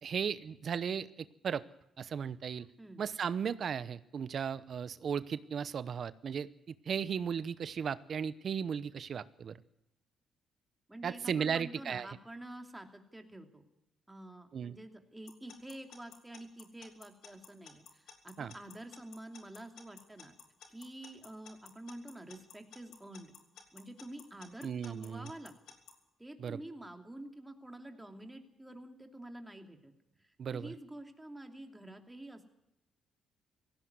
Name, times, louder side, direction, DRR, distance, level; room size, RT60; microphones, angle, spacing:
voice 1, 0.0-1.1 1.4-1.6 2.0-2.7 3.0-6.5 6.9-9.6 11.0-12.1 14.5-14.8 18.4-18.5 24.6-25.3 26.4-26.6 30.4-30.7, right 7 dB, 55° right, 15 dB, 0.8 m, -36 dB
voice 2, 10.9-13.6 14.1-20.3 20.7-23.3 23.7-25.5 26.2-29.9 30.2-32.5, right 1 dB, 10° right, 4 dB, 2.8 m, -48 dB
Alarm / Clock, 15.3-25.9, left 7 dB, 80° left, 2.9 m, -53 dB
17.0 x 16.0 x 9.5 m, 0.83 s
cardioid pair, 90°, 0 cm